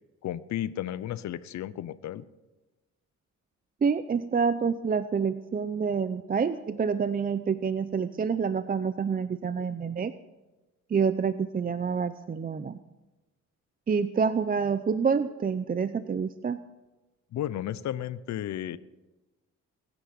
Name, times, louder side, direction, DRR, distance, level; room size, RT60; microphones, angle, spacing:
voice 1, 0.2-2.2 17.3-18.8, left 11 dB, 70° left, 16 dB, 0.8 m, -33 dB
voice 2, 3.8-10.1 10.9-12.8 13.9-16.6, right 6 dB, 30° right, 12 dB, 0.6 m, -27 dB
21.5 x 9.9 x 6.0 m, 1.1 s
cardioid pair, 90°, 30 cm